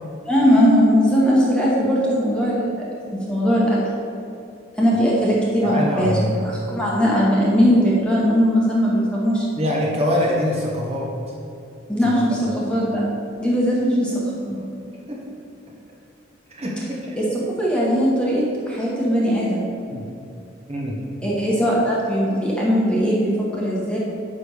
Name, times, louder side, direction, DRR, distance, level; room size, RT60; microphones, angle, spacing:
voice 1, 0.2-2.8 3.1-3.8 4.8-9.5 11.9-13.0 13.4-14.6 17.2-17.3 17.6-19.7 21.2-24.0, equal, 5° left, -6 dB, 1.3 m, -19 dB
voice 2, 5.6-6.4 9.6-11.1 15.1-15.2 16.5-16.7 17.1-17.2 19.9-20.0 20.7-21.0, left 1 dB, 30° right, -4 dB, 1.2 m, -23 dB
9.8 x 3.5 x 6.5 m, 2.6 s
head